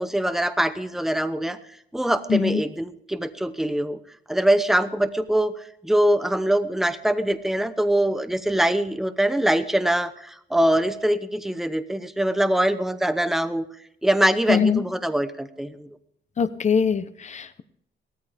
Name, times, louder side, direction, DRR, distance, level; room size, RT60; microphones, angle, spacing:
voice 1, 0.0-1.6 1.9-4.0 4.3-13.7 14.0-15.9, right 1 dB, ahead, 11 dB, 0.8 m, -23 dB
voice 2, 2.3-2.6 14.5-14.8 16.4-17.6, left 6 dB, 35° left, 12 dB, 0.9 m, -22 dB
17.5 x 13.5 x 3.5 m, 0.72 s
cardioid pair, 140°, 20 cm